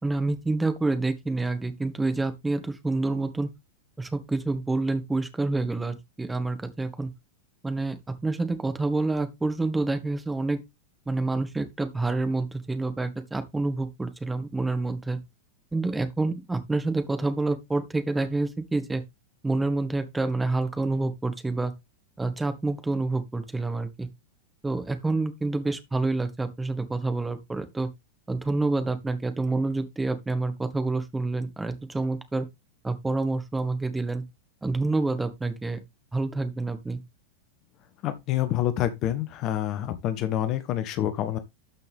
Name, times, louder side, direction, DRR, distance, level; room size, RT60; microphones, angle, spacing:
voice 1, 0.0-3.5 4.0-7.1 7.6-8.0 8.2-10.6 11.1-15.2 15.7-19.0 19.4-21.7 22.2-24.1 24.6-27.9 28.3-32.5 32.8-34.2 34.6-35.8 36.1-37.0, right 3 dB, 10° right, 1.6 m, -28 dB
voice 2, 38.0-41.4, left 12 dB, 35° left, 1.1 m, -27 dB
12.5 x 5.7 x 3.5 m
figure-of-eight pair, 90°, 0 cm